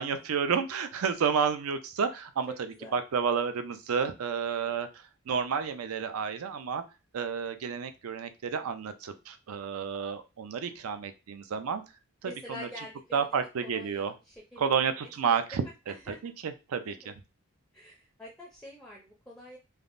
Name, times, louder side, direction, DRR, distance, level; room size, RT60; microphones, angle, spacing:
voice 1, 0.0-6.8 7.1-11.8 12.2-12.7 13.1-14.1 14.6-17.1, right 6 dB, 85° right, 9 dB, 0.4 m, -31 dB
voice 2, 2.5-2.9 4.6-4.8 10.7-10.8 12.2-13.3 13.6-16.2 16.8-17.1 17.7-19.6, left 1 dB, ahead, -2 dB, 0.4 m, -47 dB
3.4 x 2.0 x 2.5 m, 0.28 s
head